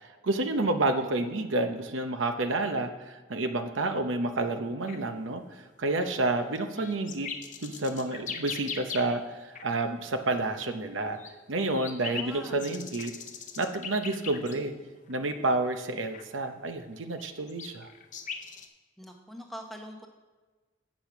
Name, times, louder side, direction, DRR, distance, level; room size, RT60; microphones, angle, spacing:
voice 1, 0.0-7.3 7.6-11.2 11.5-13.1 13.6-14.7 15.1-17.9, right 2 dB, 80° right, 7 dB, 0.8 m, -30 dB
sound 1, 4.9-5.1 6.2-9.3 9.6-9.7 10.9-14.8 15.1-15.2 16.1-16.3 16.9-18.7, left 6 dB, 40° left, 0.7 m, -40 dB
voice 2, 12.1-12.6 19.0-20.1, equal, ahead, 2 dB, 0.9 m, -43 dB
8.4 x 6.1 x 5.9 m, 1.3 s
head